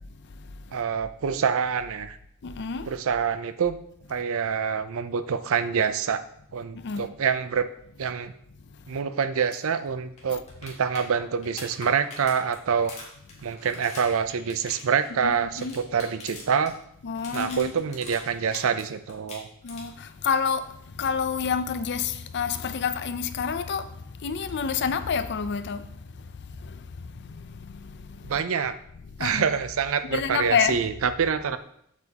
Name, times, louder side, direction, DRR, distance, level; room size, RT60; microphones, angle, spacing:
voice 1, 0.7-2.2 2.9-3.8 4.1-6.2 6.5-7.7 8.0-8.3 8.9-12.9 13.4-16.7 17.3-19.5 28.2-28.8 29.2-31.6, right 6 dB, 65° right, 0.5 m, -26 dB
voice 2, 2.4-2.9 6.7-7.1 10.3-10.4 15.2-15.8 17.0-17.7 19.6-20.7 21.0-23.9 24.2-25.8 26.6-26.7 27.3-27.4 27.8-28.0 29.2-29.4 30.1-30.8, left 6 dB, 55° left, 0.5 m, -28 dB
sound 1, 9.4-9.6 9.9-10.0 10.2-16.7 17.0-18.8 19.1-20.0 22.1-22.2, left 3 dB, 30° left, 2.0 m, -43 dB
7.9 x 7.2 x 2.9 m
head